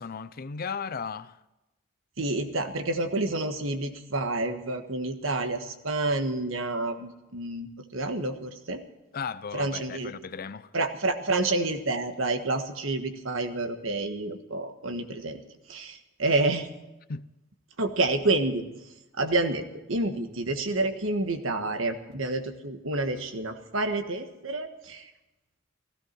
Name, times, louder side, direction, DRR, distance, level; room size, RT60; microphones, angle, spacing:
voice 1, 0.0-1.4 9.1-10.7 17.1-17.3, left 5 dB, 50° left, 0.5 m, -35 dB
voice 2, 2.2-8.8 9.5-10.1 10.7-15.4 15.7-16.7 17.8-18.6 19.2-19.6 19.9-25.1, right 2 dB, 80° right, 1.5 m, -29 dB
16.0 x 15.5 x 4.6 m
head